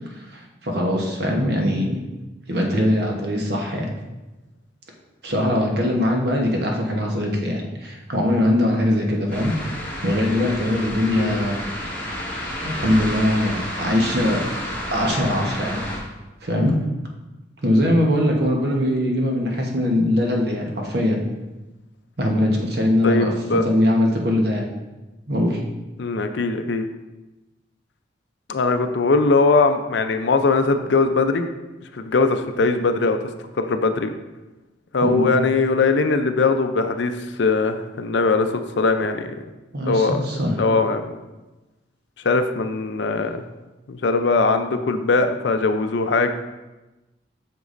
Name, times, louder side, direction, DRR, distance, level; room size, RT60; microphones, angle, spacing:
voice 1, 0.3-2.0 2.5-3.9 5.2-9.5 10.0-11.6 12.6-14.4 14.9-15.8 16.4-16.8 17.6-21.2 22.2-23.3 23.6-24.7 25.3-25.6 35.0-35.3 39.7-40.5, left 1 dB, 55° right, 0 dB, 1.0 m, -21 dB
sound 1, 9.3-16.0, equal, 10° left, 1.7 m, -30 dB
voice 2, 23.0-23.7 26.0-26.9 28.5-31.5 31.9-33.2 33.6-34.1 34.9-39.3 39.8-40.2 40.6-41.2 42.2-43.4 43.9-46.3, left 3 dB, 70° left, 8 dB, 0.5 m, -20 dB
8.1 x 6.0 x 2.6 m, 1.1 s
head